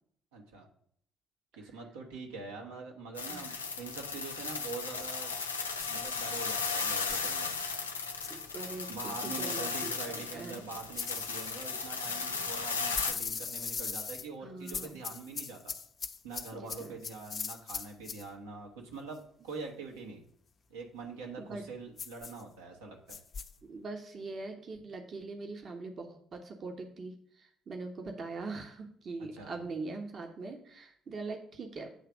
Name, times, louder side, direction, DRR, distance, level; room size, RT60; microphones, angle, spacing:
voice 1, 0.3-0.7 1.5-5.3 5.9-7.5 8.9-15.7 16.2-20.2 20.7-23.2 29.3-29.5, right 4 dB, 70° right, 0 dB, 1.2 m, -44 dB
sound 1, 3.2-13.1, left 4 dB, 80° left, 0.5 m, -36 dB
sound 2, 5.8-6.2 7.1-7.3 8.2-8.5 10.9-12.2 12.9-14.3 14.7-18.3 22.0-22.4 23.1-23.5, left 6 dB, 40° left, 0.6 m, -40 dB
voice 2, 8.3-10.7 12.1-12.5 14.4-15.0 16.5-16.9 21.4-21.6 23.6-31.9, right 3 dB, 40° right, 3 dB, 1.1 m, -42 dB
8.4 x 3.3 x 6.1 m, 0.64 s
figure-of-eight pair, 45°, 0 cm